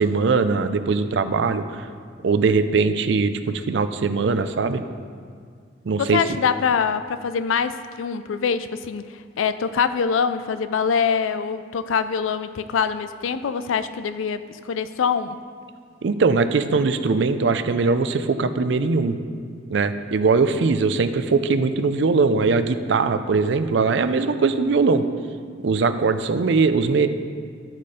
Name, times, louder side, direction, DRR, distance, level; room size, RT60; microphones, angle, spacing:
voice 1, 0.0-1.8 2.2-4.8 5.8-6.2 16.0-19.2 19.7-25.0 25.6-27.1, right 4 dB, 65° right, 10 dB, 0.4 m, -21 dB
voice 2, 6.0-9.1 9.4-15.4, left 6 dB, 90° left, 12 dB, 0.4 m, -24 dB
12.0 x 4.9 x 4.2 m, 2.1 s
head